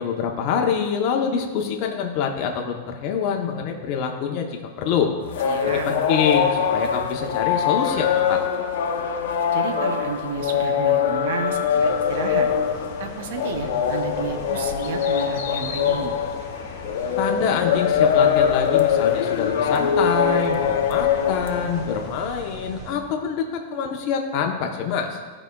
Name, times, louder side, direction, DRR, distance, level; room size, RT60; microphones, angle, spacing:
voice 1, 0.0-4.5 4.8-5.1 5.7-8.4 17.2-25.2, left 6 dB, 40° left, 2 dB, 0.7 m, -25 dB
sound 1, 5.2-22.3, left 7 dB, 70° left, 0.6 m, -23 dB
voice 2, 5.4-5.9 9.5-12.5 13.0-16.1, right 6 dB, 65° right, 6 dB, 0.6 m, -32 dB
sound 2, 11.7-22.9, right 1 dB, 20° right, 1.8 m, -41 dB
13.5 x 4.8 x 2.3 m, 1.5 s
supercardioid pair, 160°, 0 cm